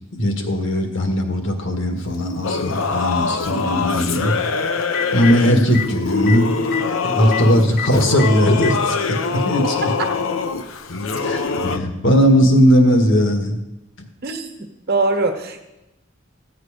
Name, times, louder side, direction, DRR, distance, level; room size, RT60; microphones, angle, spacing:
voice 1, 0.1-4.3 5.1-6.5 7.0-9.2 9.4-9.9 11.1-13.6, equal, 65° left, 4 dB, 1.7 m, -18 dB
Telephone, 2.1-2.2 4.4-4.5 4.8-5.3 5.7-5.9 6.3-6.4 6.6-6.8 7.3-7.4 7.8-7.9 8.2-8.8 9.8-9.9 11.3-11.4, left 9 dB, 50° left, 0.7 m, -26 dB
Singing / Musical instrument, 2.4-11.8, left 4 dB, 90° left, 0.8 m, -23 dB
voice 2, 4.2-4.6 14.2-14.5 14.9-15.6, right 3 dB, 50° right, 5 dB, 1.4 m, -22 dB
15.0 x 8.2 x 5.0 m, 0.95 s
head